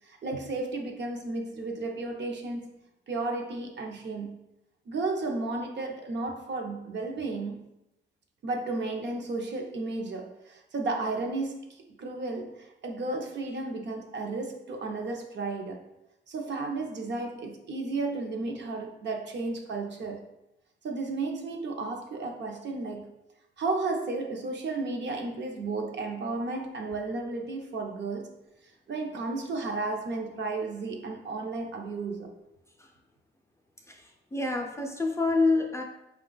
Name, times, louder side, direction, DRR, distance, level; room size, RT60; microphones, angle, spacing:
voice 1, 0.0-2.7 3.1-4.4 4.9-7.7 8.4-15.8 16.3-20.3 20.8-23.1 23.6-28.3 28.9-32.3, right 3 dB, 60° right, 2 dB, 0.7 m, -33 dB
voice 2, 34.3-35.8, left 3 dB, 15° left, 1 dB, 0.4 m, -26 dB
5.0 x 2.3 x 3.8 m, 0.91 s
wide cardioid pair, 135°, 21 cm